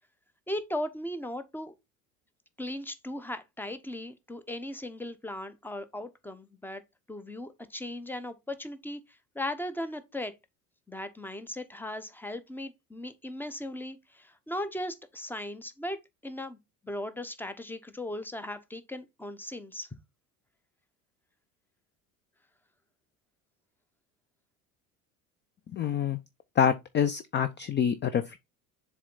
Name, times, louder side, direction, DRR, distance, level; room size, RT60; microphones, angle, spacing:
voice 1, 0.5-1.7 2.6-6.8 7.1-9.0 9.3-10.3 10.9-16.0 16.2-16.6 16.8-19.9, left 1 dB, 5° left, 0.9 m, -37 dB
voice 2, 25.7-26.2 26.6-28.4, left 8 dB, 25° left, 0.5 m, -26 dB
7.2 x 3.6 x 3.9 m
hypercardioid pair, 70°, 43 cm